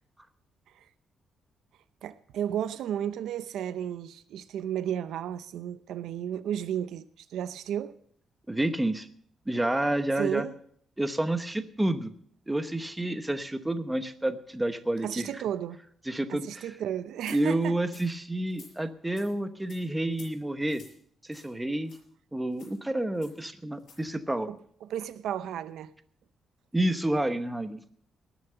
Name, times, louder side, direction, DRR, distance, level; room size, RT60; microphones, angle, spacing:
voice 1, 2.0-7.9 10.2-10.5 15.0-15.8 16.3-17.8 24.5-24.6 24.8-25.9, right 10 dB, 85° right, 0.6 m, -33 dB
voice 2, 8.5-9.1 9.5-10.5 11.0-12.1 12.5-15.3 16.1-16.7 17.3-20.8 21.2-21.9 22.3-24.5 26.7-27.8, right 1 dB, 10° right, 0.9 m, -29 dB
sound 1, 17.2-17.4 17.9-18.1 18.5-18.7 19.2-19.3 19.7-19.8 20.1-20.3 20.7-20.9 21.3-21.5 21.8-22.0 22.5-22.8 23.2-23.4 23.8-24.0, left 4 dB, 55° left, 5.9 m, -51 dB
19.0 x 7.2 x 6.8 m
cardioid pair, 140°, 0 cm